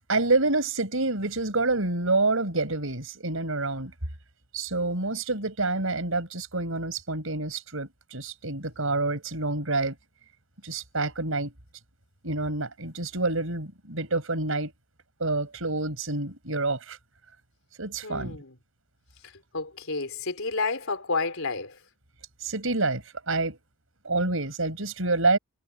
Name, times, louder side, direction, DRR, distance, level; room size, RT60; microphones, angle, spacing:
voice 1, 0.1-3.9 4.5-10.0 10.6-11.5 12.2-14.7 15.2-17.0 17.8-18.4 22.4-23.6 24.0-25.4, right 3 dB, 70° right, 5.7 m, -27 dB
voice 2, 18.0-18.6 19.2-21.8, left 3 dB, 70° left, 4.3 m, -31 dB
head